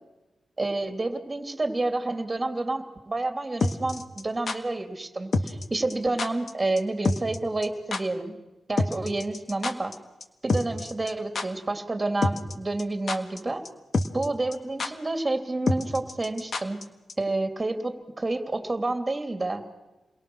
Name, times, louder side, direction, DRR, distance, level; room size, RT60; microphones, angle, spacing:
voice 1, 0.6-8.3 8.7-9.9 10.4-13.6 14.1-16.8 17.2-19.6, right 2 dB, 25° right, 6 dB, 3.1 m, -29 dB
sound 1, 3.6-4.6 5.3-5.6 5.9-6.0 6.2-6.5 6.8-6.9 7.0-7.4 7.6-7.7 7.9-8.0 8.8-9.9 10.2-10.3 10.5-11.1 11.3-11.5 12.2-12.5 12.8-13.4 13.6-13.7 13.9-14.3 14.5-14.6 14.8-14.9 15.7-16.8 17.1-17.2, left 3 dB, 60° left, 1.7 m, -26 dB
29.5 x 22.5 x 6.4 m, 1.0 s
cardioid pair, 80°, 0 cm